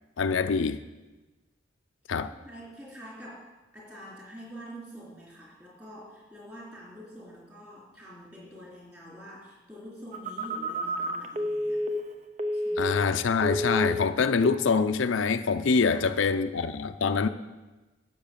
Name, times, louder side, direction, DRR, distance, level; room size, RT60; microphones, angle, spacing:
voice 1, 0.2-0.8 2.1-2.3 12.8-17.3, left 5 dB, 90° left, 0.5 m, -25 dB
voice 2, 2.1-11.8 12.5-12.9 15.8-16.3, equal, 15° right, 3.4 m, -46 dB
Telephone, 10.1-13.2 13.4-14.1 14.4-14.7, equal, 35° right, 0.6 m, -30 dB
10.5 x 6.5 x 6.8 m
head